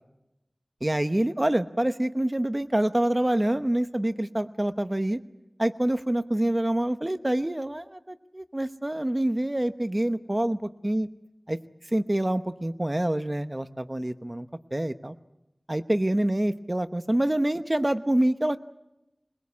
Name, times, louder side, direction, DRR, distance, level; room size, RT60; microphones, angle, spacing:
voice 1, 0.8-5.2 5.6-11.1 11.5-11.6 11.9-15.1 15.7-18.6, right 1 dB, 30° right, 10 dB, 0.9 m, -26 dB
22.0 x 21.5 x 8.5 m, 0.90 s
wide cardioid pair, 50°, 0 cm